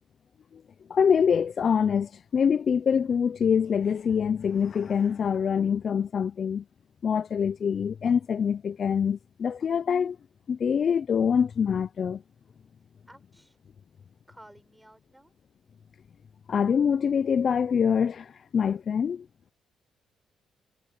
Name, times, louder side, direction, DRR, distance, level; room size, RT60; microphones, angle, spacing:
voice 1, 0.9-6.6 7.0-10.2 10.5-12.2 16.5-19.3, left 7 dB, 50° left, 0.4 m, -25 dB
voice 2, 13.1-13.6 14.3-15.3, right 1 dB, 5° right, 5.3 m, -53 dB
cardioid pair, 90°, 0 cm